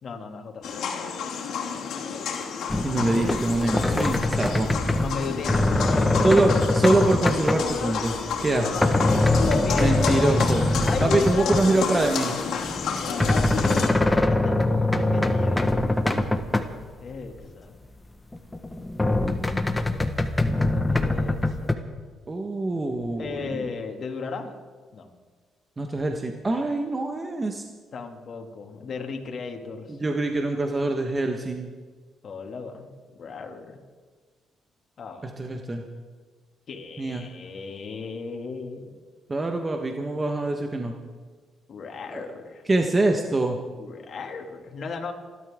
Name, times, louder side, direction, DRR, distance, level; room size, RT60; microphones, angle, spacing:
voice 1, 0.0-1.0 2.8-6.8 8.5-10.0 10.8-11.6 13.0-13.3 14.1-15.8 16.4-17.8 20.6-21.8 23.2-24.6 24.9-25.1 27.9-30.0 32.2-33.8 35.0-35.3 36.7-38.9 41.7-42.7 43.8-45.1, left 4 dB, 55° left, 3 dB, 2.4 m, -36 dB
sound 1, 0.6-13.9, left 6 dB, 75° left, 2.8 m, -30 dB
sound 2, 2.7-11.8 12.5-16.8 17.1-17.2 17.4-17.5 18.3-21.7, left 2 dB, 15° left, 1.3 m, -23 dB
voice 2, 2.8-4.7 6.2-8.9 9.8-10.6 11.0-12.3 22.3-23.6 25.8-27.6 29.9-31.7 35.2-35.8 37.0-37.2 39.3-40.9 42.1-42.3 42.7-43.6, right 2 dB, 25° right, 3 dB, 1.4 m, -24 dB
29.0 x 12.5 x 3.7 m, 1.5 s
cardioid pair, 85°, 0 cm